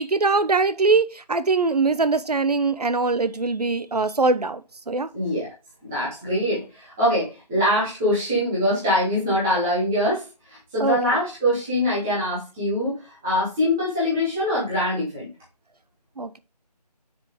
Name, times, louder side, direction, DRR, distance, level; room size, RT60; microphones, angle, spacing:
voice 1, 0.0-4.6 4.9-5.1 10.8-11.0 16.2-16.4, right 3 dB, 65° right, 1.0 m, -22 dB
voice 2, 5.1-5.5 5.8-10.2 10.5-15.3, left 1 dB, 5° right, 0.8 m, -23 dB
9.5 x 5.2 x 3.6 m
figure-of-eight pair, 170°, 21 cm